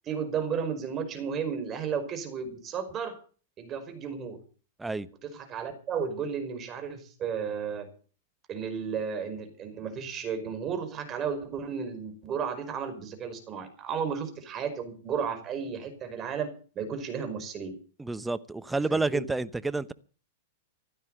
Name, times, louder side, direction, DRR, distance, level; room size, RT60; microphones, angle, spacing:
voice 1, 0.0-3.2 3.6-4.4 5.2-7.9 8.5-16.5 16.8-17.8 18.9-19.2, right 6 dB, 30° right, 5.3 m, -33 dB
voice 2, 18.0-19.9, right 3 dB, 10° right, 0.9 m, -29 dB
16.0 x 12.0 x 6.6 m
hypercardioid pair, 110°, 0 cm